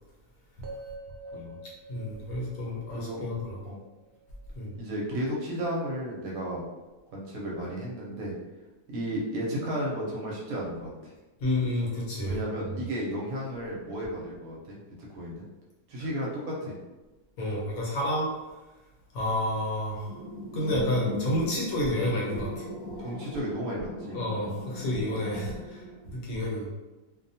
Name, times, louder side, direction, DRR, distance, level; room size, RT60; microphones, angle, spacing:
sound 1, 0.6-4.7, right 2 dB, 90° right, 0.5 m, -46 dB
voice 1, 1.9-3.6 4.5-4.7 11.4-12.7 17.4-18.3 19.1-20.2 20.5-22.6 24.1-25.8 26.1-26.7, left 1 dB, 70° left, -4 dB, 1.1 m, -30 dB
voice 2, 2.9-3.3 3.7-3.8 4.7-6.7 7.1-8.3 8.9-11.1 12.2-15.4 15.9-16.7 23.0-24.2 25.4-25.6, equal, 70° right, -4 dB, 1.0 m, -33 dB
sound 2, 20.0-26.1, left 1 dB, 45° left, 0.4 m, -39 dB
2.6 x 2.1 x 2.7 m, 1.1 s
omnidirectional pair, 1.7 m